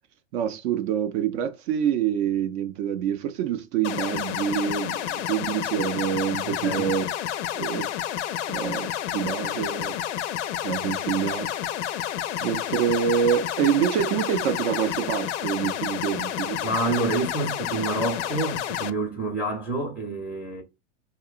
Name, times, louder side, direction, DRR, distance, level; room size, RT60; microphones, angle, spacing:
voice 1, 0.3-7.1 7.6-7.9 8.5-10.0 10.6-11.5 12.4-16.7, right 9 dB, 55° right, 0.5 m, -26 dB
sound 1, 3.8-18.9, left 11 dB, 70° left, 0.5 m, -30 dB
voice 2, 6.5-6.9 16.6-20.6, right 2 dB, 5° right, 0.5 m, -28 dB
2.8 x 2.1 x 2.3 m
hypercardioid pair, 110°, 37 cm